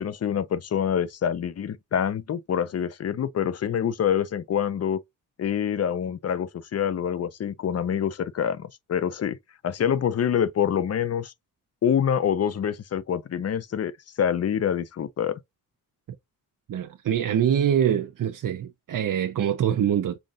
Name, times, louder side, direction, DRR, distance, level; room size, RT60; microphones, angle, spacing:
voice 1, 0.0-5.0 5.4-9.4 9.6-11.3 11.8-13.9 14.2-15.4, left 8 dB, 50° left, 0.5 m, -26 dB
voice 2, 16.7-20.2, right 9 dB, 85° right, 0.7 m, -24 dB
5.8 x 3.7 x 2.4 m
wide cardioid pair, 160°, 32 cm